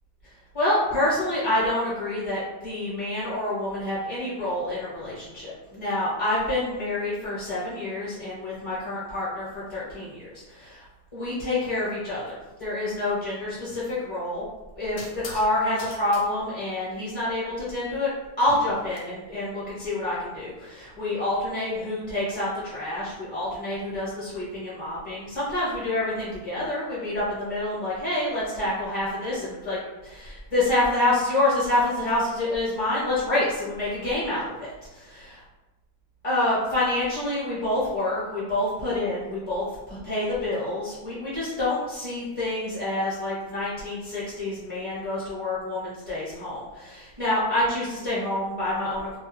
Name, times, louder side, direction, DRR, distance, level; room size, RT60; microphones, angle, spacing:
voice 1, 0.5-10.8 11.1-14.4 14.7-18.1 18.4-29.8 30.0-35.1 36.2-49.2, left 1 dB, 25° left, -9 dB, 0.7 m, -27 dB
sound 1, 13.7-13.9 15.0-15.5 15.8-16.2 18.4-19.0, left 2 dB, 75° left, 0.5 m, -42 dB
2.7 x 2.3 x 2.9 m, 1.1 s
omnidirectional pair, 1.6 m